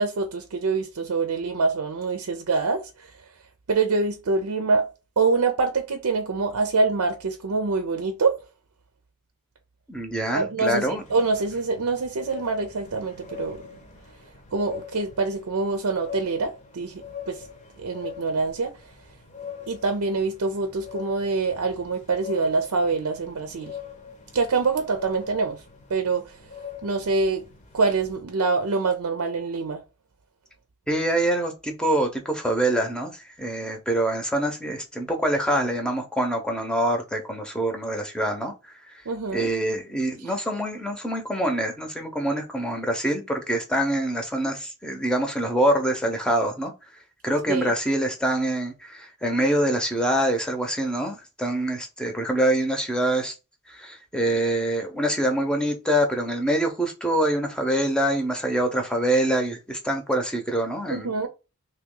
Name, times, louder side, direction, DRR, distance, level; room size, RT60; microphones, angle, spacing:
voice 1, 0.0-3.1 3.7-4.9 5.2-8.4 10.3-13.6 14.5-17.4 17.8-18.7 19.7-23.7 24.3-25.6 25.9-26.3 26.8-27.4 27.7-29.8 39.1-39.5 47.5-47.8 60.9-61.3, right 4 dB, 90° right, 0.6 m, -25 dB
voice 2, 9.9-11.0 30.9-46.7 47.2-53.3 53.7-61.3, right 1 dB, 5° left, 0.7 m, -25 dB
sound 1, 10.7-28.2, left 7 dB, 35° left, 0.7 m, -43 dB
3.0 x 2.9 x 3.7 m
head